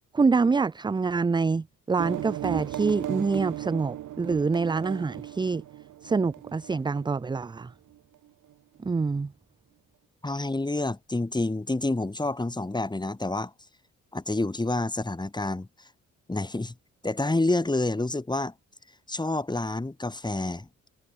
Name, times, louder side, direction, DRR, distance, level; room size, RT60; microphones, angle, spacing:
voice 1, 0.1-5.6 6.0-7.7 8.8-9.3, right 4 dB, 15° right, 0.5 m, -26 dB
sound 1, 2.0-7.4, right 13 dB, 80° right, 4.4 m, -36 dB
voice 2, 10.2-13.5 14.1-15.7 16.3-16.7 17.0-18.5 19.1-20.7, left 2 dB, 15° left, 4.6 m, -28 dB
cardioid pair, 90°, 30 cm